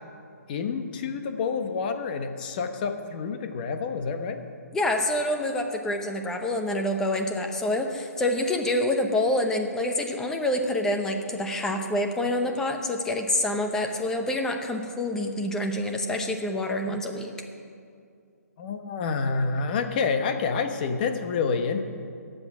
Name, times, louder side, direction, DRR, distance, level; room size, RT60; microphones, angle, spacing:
voice 1, 0.5-4.4 18.6-21.8, left 5 dB, 30° left, 6 dB, 1.1 m, -28 dB
voice 2, 4.7-17.3, left 1 dB, 5° left, 4 dB, 0.8 m, -27 dB
22.0 x 8.1 x 6.1 m, 2.4 s
hypercardioid pair, 155°, 9 cm